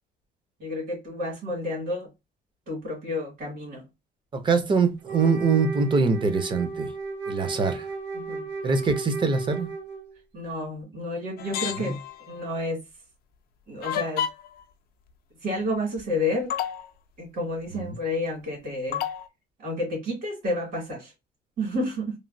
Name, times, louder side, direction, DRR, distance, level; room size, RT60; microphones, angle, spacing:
voice 1, 0.6-2.1 2.7-3.8 8.1-8.4 10.3-12.0 12.3-12.8 13.7-14.2 15.4-16.5 17.2-19.0 19.6-21.1 21.6-22.1, left 1 dB, 60° right, 2.0 m, -30 dB
voice 2, 4.3-6.9 7.3-7.9 8.6-9.7 11.8-12.0 17.7-18.0, right 4 dB, 25° right, 0.6 m, -24 dB
Wind instrument woodwind instrument, 5.0-10.2, right 3 dB, 80° right, 1.1 m, -34 dB
sound 1, 11.4-12.3 13.8-14.6 16.0-16.1 16.5-16.9 18.9-19.3, left 10 dB, 60° left, 0.4 m, -30 dB
3.1 x 2.5 x 2.6 m
cardioid pair, 145°, 18 cm